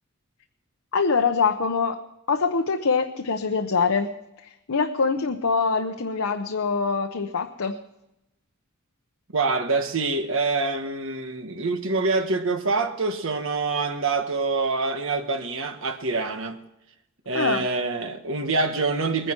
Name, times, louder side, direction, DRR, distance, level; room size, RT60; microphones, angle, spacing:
voice 1, 0.9-2.0 2.3-4.1 4.4-7.8 17.3-17.6, left 5 dB, 75° left, 0.9 m, -24 dB
voice 2, 9.3-16.6 17.2-19.3, right 3 dB, 65° right, 1.4 m, -25 dB
21.0 x 10.0 x 4.5 m
head